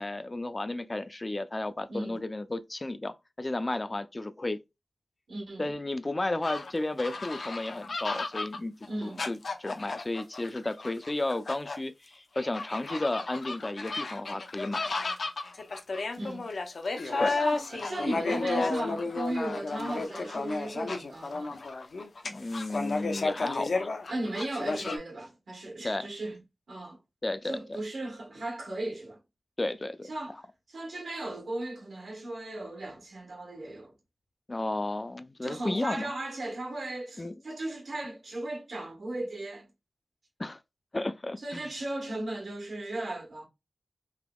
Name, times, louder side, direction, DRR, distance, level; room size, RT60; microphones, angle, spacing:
voice 1, 0.0-4.6 5.6-8.7 9.0-14.9 16.2-16.3 17.2-17.3 22.2-23.9 25.8-26.1 27.2-27.6 29.6-30.1 34.5-36.1 37.2-37.3 40.4-40.6 40.9-41.6, left 2 dB, 30° left, 0.3 m, -33 dB
voice 2, 1.9-2.2 5.3-5.7 8.9-9.3 16.1-16.5 17.0-21.6 24.1-26.4 26.7-27.0 27.4-29.2 30.0-30.4 30.7-33.9 35.4-39.7 41.4-43.5, right 1 dB, 85° right, 1.2 m, -36 dB
sound 1, 6.4-11.8 12.4-25.0, left 3 dB, 80° left, 0.5 m, -33 dB
3.4 x 2.9 x 2.2 m
wide cardioid pair, 100°, 0 cm